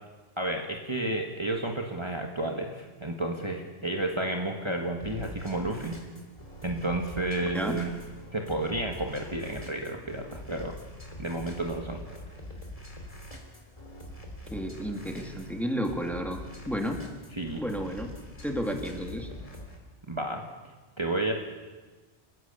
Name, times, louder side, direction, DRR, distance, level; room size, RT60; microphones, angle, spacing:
voice 1, 0.4-6.0 6.6-7.9 8.3-10.8 11.2-12.0 17.3-17.6 20.1-20.4 21.0-21.3, right 1 dB, 25° right, 1 dB, 1.8 m, -31 dB
sound 1, 5.0-19.8, left 1 dB, 30° left, 3.4 m, -44 dB
voice 2, 7.5-7.9 14.5-16.4 16.7-17.0 17.6-18.1 18.4-19.3, equal, ahead, 3 dB, 2.2 m, -32 dB
29.5 x 16.0 x 6.9 m, 1.3 s
omnidirectional pair, 1.1 m